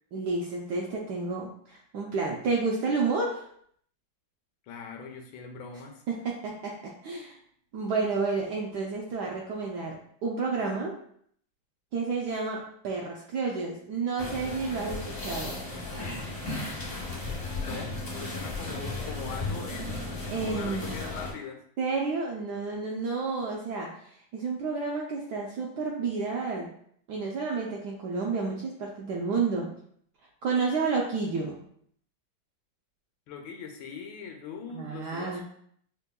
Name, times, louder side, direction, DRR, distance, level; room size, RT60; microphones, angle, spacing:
voice 1, 0.1-3.4 6.1-7.4 7.7-10.9 11.9-15.6 20.3-20.9 21.8-26.7 27.1-29.7 30.4-31.6 34.7-35.4, right 4 dB, 75° right, -2 dB, 0.9 m, -30 dB
voice 2, 4.6-6.0 17.6-21.6 33.3-35.4, left 6 dB, 80° left, 3 dB, 1.4 m, -41 dB
sound 1, 14.2-21.3, left 2 dB, 45° left, 0.5 m, -35 dB
5.3 x 2.2 x 2.2 m, 0.63 s
omnidirectional pair, 2.2 m